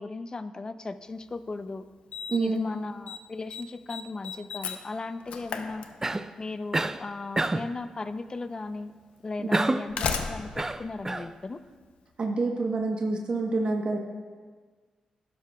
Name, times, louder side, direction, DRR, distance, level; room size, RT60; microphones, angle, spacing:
voice 1, 0.0-1.9 2.4-5.9 6.4-8.9 9.2-11.6, left 3 dB, 35° left, 12 dB, 0.5 m, -36 dB
Slam, 1.3-1.4 2.1-2.6 2.9-3.2 3.5-6.4 7.6-7.7 8.5-8.6 9.6-11.9, left 6 dB, 85° left, 0.6 m, -35 dB
voice 2, 2.3-2.6 12.2-14.0, right 3 dB, 55° right, 1 dB, 1.0 m, -27 dB
Cough, 6.0-6.3 6.7-7.0 7.4-7.7 9.5-9.9 10.5-11.3, right 2 dB, 20° right, 0.4 m, -27 dB
12.0 x 11.0 x 2.3 m, 1.5 s
cardioid pair, 65°, 2 cm